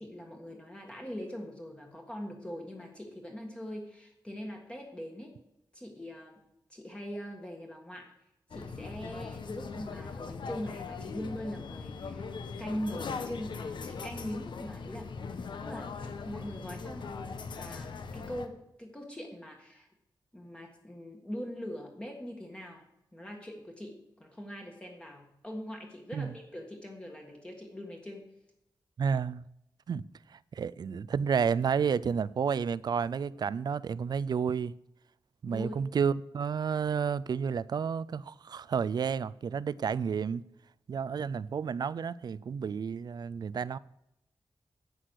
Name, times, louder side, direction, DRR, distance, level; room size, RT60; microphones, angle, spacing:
voice 1, 0.0-5.3 5.7-6.4 6.7-8.1 8.5-12.3 12.6-15.1 15.6-17.1 17.5-19.9 20.3-22.8 23.1-28.2 35.4-35.9, equal, 10° left, 1.5 m, -42 dB
sound 1, 8.5-18.5, left 5 dB, 70° left, 1.0 m, -40 dB
voice 2, 29.0-29.4 29.9-30.0 30.5-34.7 35.4-40.4 40.9-43.8, right 6 dB, 55° right, 0.4 m, -31 dB
9.9 x 8.3 x 6.3 m
wide cardioid pair, 165°, 8 cm